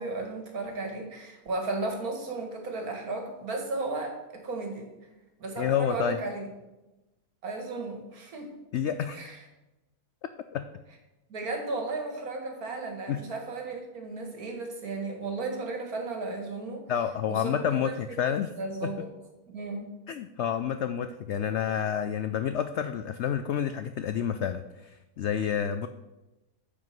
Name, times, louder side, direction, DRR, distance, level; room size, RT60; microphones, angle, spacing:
voice 1, 0.0-4.9 5.4-6.4 7.4-8.5 9.1-9.4 11.3-16.9 17.3-18.0 18.6-19.1 19.5-19.9, right 3 dB, 65° right, 3 dB, 2.3 m, -34 dB
voice 2, 5.6-6.2 8.7-9.2 10.5-10.7 13.1-13.2 16.9-18.5 18.8-18.9 20.1-25.9, left 8 dB, 90° left, 10 dB, 0.6 m, -29 dB
9.6 x 5.2 x 7.6 m, 1.0 s
omnidirectional pair, 1.7 m